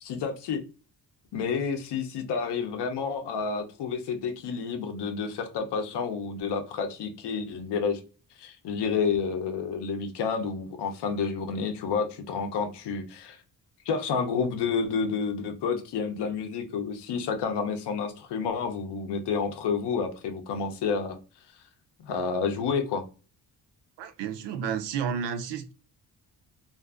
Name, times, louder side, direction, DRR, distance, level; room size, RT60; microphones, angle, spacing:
voice 1, 0.0-0.6 1.3-8.0 8.4-13.4 13.9-21.2 22.0-23.0, left 5 dB, 70° left, 0.6 m, -30 dB
voice 2, 24.0-25.7, right 7 dB, 75° right, 0.5 m, -31 dB
2.6 x 2.4 x 2.3 m
wide cardioid pair, 165°, 42 cm